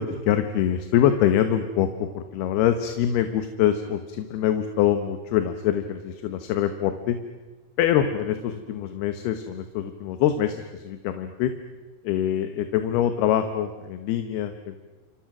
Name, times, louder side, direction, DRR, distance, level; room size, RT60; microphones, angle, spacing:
voice 1, 0.0-7.2 7.8-11.5 12.0-14.8, left 10 dB, 80° left, 8 dB, 3.1 m, -24 dB
29.0 x 27.5 x 6.1 m, 1.2 s
omnidirectional pair, 4.6 m